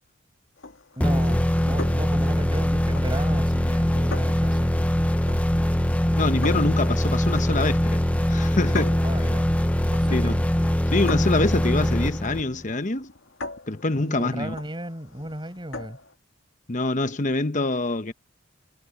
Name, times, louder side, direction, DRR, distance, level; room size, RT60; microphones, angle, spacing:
sound 1, 0.6-16.1, left 2 dB, 65° left, 2.0 m, -42 dB
sound 2, 1.0-12.7, equal, 5° left, 0.6 m, -22 dB
voice 1, 1.0-4.7 9.0-9.5 9.9-10.4 13.9-16.0, right 1 dB, 20° right, 6.0 m, -34 dB
voice 2, 6.2-9.0 10.1-10.4 10.9-13.1 13.7-14.5 16.7-18.1, left 2 dB, 35° left, 1.0 m, -25 dB
head